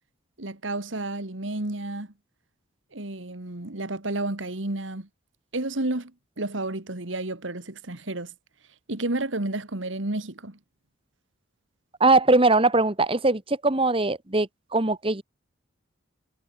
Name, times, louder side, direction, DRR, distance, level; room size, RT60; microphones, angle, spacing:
voice 1, 0.4-2.1 2.9-5.1 5.5-6.1 6.4-8.3 8.9-10.6, right 2 dB, 70° right, 2.2 m, -31 dB
voice 2, 12.0-15.2, right 2 dB, 30° right, 1.5 m, -21 dB
head